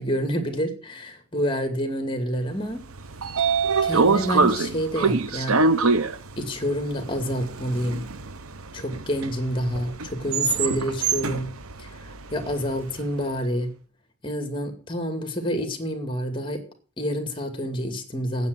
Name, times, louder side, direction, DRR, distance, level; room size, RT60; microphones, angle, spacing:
voice 1, 0.0-2.8 3.8-5.6 6.4-8.1 8.7-11.5 11.8-13.7 14.2-16.6 17.0-18.5, equal, 25° left, 2.4 m, -28 dB
Train / Sliding door, 2.8-12.9, right 4 dB, 90° right, 0.9 m, -25 dB
9.4 x 8.1 x 9.4 m
head